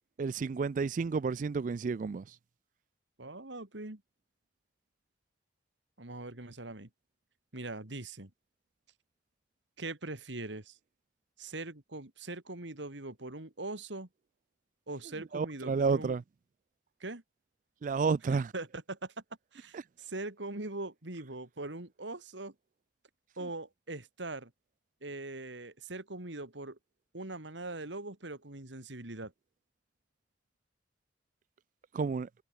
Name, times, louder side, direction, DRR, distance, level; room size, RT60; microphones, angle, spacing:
voice 1, 0.2-2.2 15.2-16.2 17.8-18.5 31.9-32.3, right 5 dB, 45° right, 0.3 m, -31 dB
voice 2, 3.2-4.0 6.0-6.9 7.5-8.3 9.8-10.8 11.4-14.1 14.9-16.1 17.0-17.2 18.5-19.1 19.5-22.5 23.4-24.5 25.0-26.8 27.1-29.3, right 2 dB, 85° right, 2.7 m, -41 dB
head